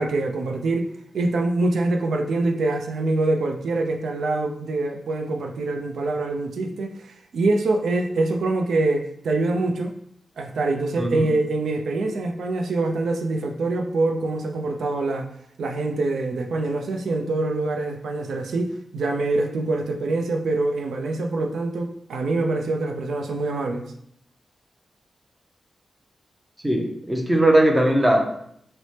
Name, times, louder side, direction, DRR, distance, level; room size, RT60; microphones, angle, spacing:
voice 1, 0.0-9.9 10.4-15.3 15.6-23.8, right 2 dB, 90° right, 3 dB, 0.4 m, -25 dB
voice 2, 11.0-11.3 26.6-28.2, right 1 dB, 15° right, 2 dB, 0.5 m, -19 dB
3.2 x 2.0 x 4.1 m, 0.70 s
wide cardioid pair, 140°, 0 cm